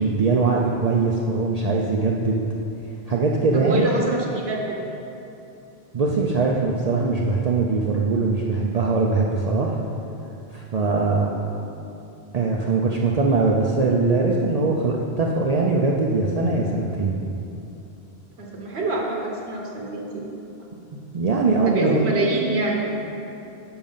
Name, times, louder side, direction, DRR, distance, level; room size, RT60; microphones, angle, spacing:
voice 1, 0.0-2.4 3.1-3.8 5.9-9.8 10.5-11.3 12.3-17.2 20.9-22.1, right 3 dB, 50° right, -2 dB, 0.5 m, -21 dB
voice 2, 3.5-4.8 18.4-20.2 21.6-22.8, right 2 dB, 80° right, -1 dB, 1.4 m, -25 dB
7.1 x 5.1 x 5.5 m, 2.8 s
omnidirectional pair, 1.1 m